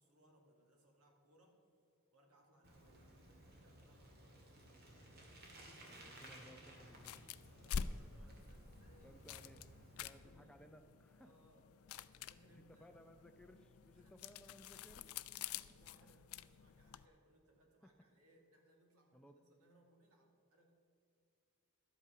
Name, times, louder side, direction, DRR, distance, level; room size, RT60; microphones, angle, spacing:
voice 1, 0.0-1.6 2.1-4.9 5.5-5.8 7.6-9.2 9.9-10.8 11.2-12.9 13.9-14.5 15.0-20.7, right 1 dB, 85° right, 1 dB, 2.2 m, -70 dB
Bicycle, 2.6-10.2, right 1 dB, 45° right, 2.0 m, -59 dB
voice 2, 5.9-7.9 8.2-8.3 9.0-11.3 12.5-15.2 16.0-16.2 19.1-19.4, equal, 5° left, 7 dB, 0.5 m, -62 dB
sound 1, 6.9-17.1, left 7 dB, 75° left, 0.4 m, -49 dB
12.0 x 8.5 x 5.9 m, 2.6 s
head